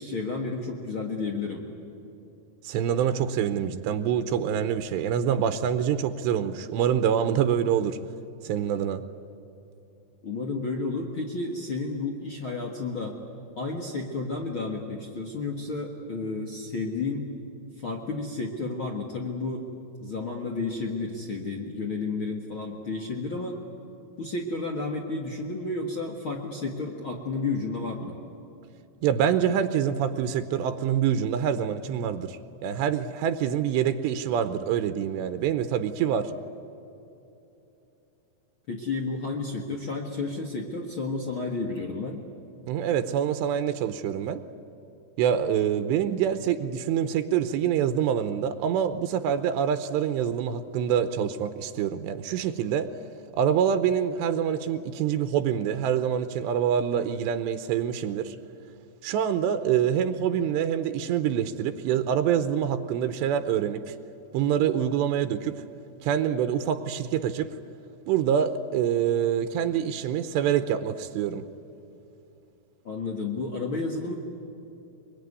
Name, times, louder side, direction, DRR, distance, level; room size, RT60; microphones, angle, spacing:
voice 1, 0.0-1.6 10.2-13.2 13.6-17.3 17.8-19.7 20.0-23.6 24.2-28.1 38.7-42.2 72.8-74.1, left 3 dB, 60° left, 1 dB, 1.4 m, -31 dB
voice 2, 2.6-8.0 8.4-9.0 29.0-36.3 42.7-44.4 45.2-52.9 53.3-58.4 59.0-63.9 64.3-65.6 66.0-67.5 68.1-71.4, right 9 dB, 85° right, 10 dB, 2.9 m, -26 dB
23.5 x 23.0 x 9.7 m, 2.9 s
omnidirectional pair, 5.0 m